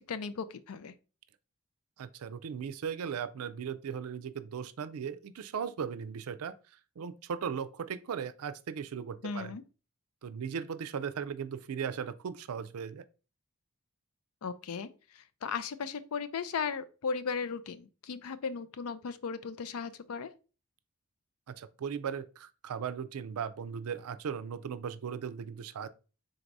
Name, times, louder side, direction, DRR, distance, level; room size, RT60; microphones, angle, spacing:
voice 1, 0.1-0.9 9.2-9.6 14.4-20.3, left 5 dB, 80° left, 0.4 m, -36 dB
voice 2, 2.0-6.5 7.0-9.6 10.2-13.0 21.5-25.9, right 7 dB, 85° right, 0.4 m, -37 dB
3.9 x 2.6 x 4.6 m
head